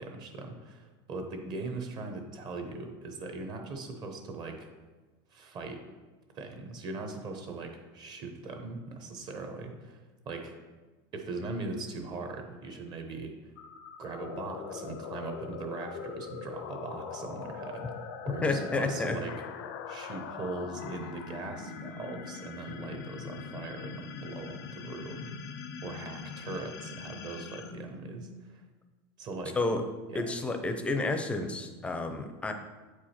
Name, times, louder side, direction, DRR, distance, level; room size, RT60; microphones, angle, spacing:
voice 1, 0.0-4.7 5.3-5.8 6.3-10.6 11.1-13.3 14.0-17.9 18.2-19.3 19.9-25.3 25.8-28.6 29.2-29.6 30.1-30.4, right 3 dB, 35° right, 4 dB, 0.9 m, -40 dB
sound 1, 13.5-28.7, left 6 dB, 85° left, 0.7 m, -42 dB
voice 2, 18.4-19.2 29.5-29.8 30.1-32.5, left 3 dB, 10° left, 7 dB, 0.5 m, -30 dB
7.8 x 4.8 x 4.4 m, 1.3 s
supercardioid pair, 155°, 13 cm